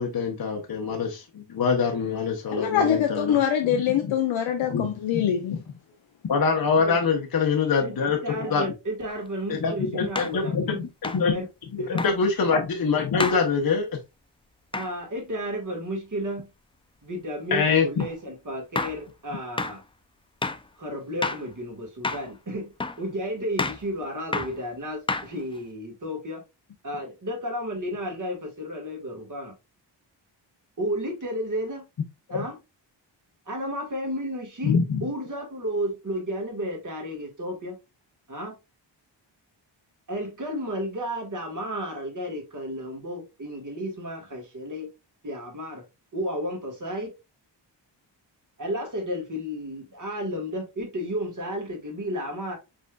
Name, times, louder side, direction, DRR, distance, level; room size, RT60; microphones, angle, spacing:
voice 1, 0.0-3.4 4.0-4.1 4.7-5.3 6.3-8.2 8.5-8.6 9.5-11.4 11.9-13.9 17.5-17.9 32.3-32.4 34.6-35.0, left 5 dB, 50° left, 0.9 m, -24 dB
voice 2, 2.6-5.6, left 9 dB, 80° left, 0.7 m, -24 dB
voice 3, 7.8-10.9 11.3-11.5 11.8-12.0 14.7-16.5 17.0-19.8 20.8-22.7 23.0-26.4 26.8-29.5 30.8-31.8 32.3-32.6 33.4-37.8 38.3-38.6 40.1-44.9 45.2-45.8 46.1-47.1 48.6-52.6, equal, 40° right, 1.7 m, -32 dB
sound 1, 9.1-9.2 10.2-10.4 11.0-11.3 12.0-12.2 13.2-13.5 14.7-14.9 18.0-18.1 18.8-19.0 19.6-19.8 20.4-20.7 21.2-21.5 22.0-22.3 22.8-23.0 23.6-23.9 24.3-24.6 25.1-25.6, left 3 dB, 15° left, 0.3 m, -30 dB
5.2 x 3.4 x 2.3 m
cardioid pair, 70°, 46 cm